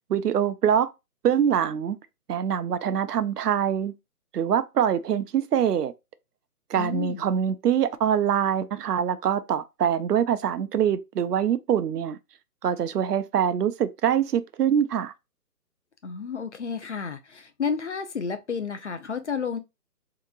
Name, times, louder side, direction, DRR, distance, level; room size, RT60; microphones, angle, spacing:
voice 1, 0.1-0.9 1.2-2.0 2.3-3.9 4.3-5.9 6.7-12.2 12.6-15.1, right 9 dB, 85° right, 0.6 m, -24 dB
voice 2, 6.8-7.2 16.0-19.6, left 6 dB, 50° left, 0.4 m, -31 dB
3.6 x 2.9 x 2.3 m
hypercardioid pair, 170°, 46 cm